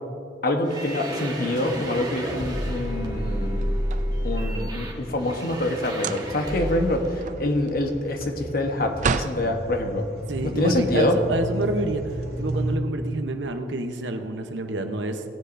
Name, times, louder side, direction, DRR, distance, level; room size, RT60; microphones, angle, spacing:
voice 1, 0.4-3.6 4.2-10.1 10.4-11.2, left 1 dB, 55° left, 4 dB, 1.1 m, -26 dB
sound 1, 0.6-7.1, equal, 25° right, 1.3 m, -30 dB
sound 2, 1.9-12.8, right 1 dB, 60° right, 1.7 m, -36 dB
sound 3, 3.5-4.7 5.9-6.5 6.9-9.4, right 5 dB, 45° right, 0.4 m, -31 dB
voice 2, 10.3-12.0 12.4-15.2, right 2 dB, 85° right, 6 dB, 0.9 m, -28 dB
17.5 x 10.0 x 2.6 m, 2.5 s
head